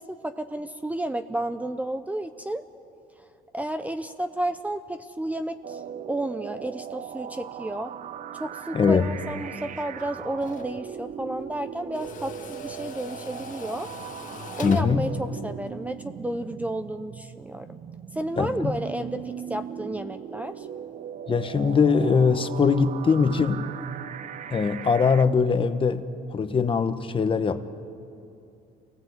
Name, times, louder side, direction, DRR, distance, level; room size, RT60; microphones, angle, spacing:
voice 1, 0.0-2.6 3.5-7.9 8.3-13.9 14.6-17.8 18.1-20.7, right 1 dB, 10° right, 10 dB, 0.7 m, -32 dB
sound 1, 5.6-25.3, right 9 dB, 45° right, 0.7 m, -39 dB
voice 2, 8.7-9.1 14.6-15.1 18.4-18.8 21.3-23.7 24.5-27.6, left 5 dB, 30° left, 10 dB, 1.1 m, -22 dB
Tools, 9.8-16.0, left 7 dB, 50° left, 1.4 m, -43 dB
27.0 x 18.5 x 8.0 m, 2.6 s
cardioid pair, 110°, 17 cm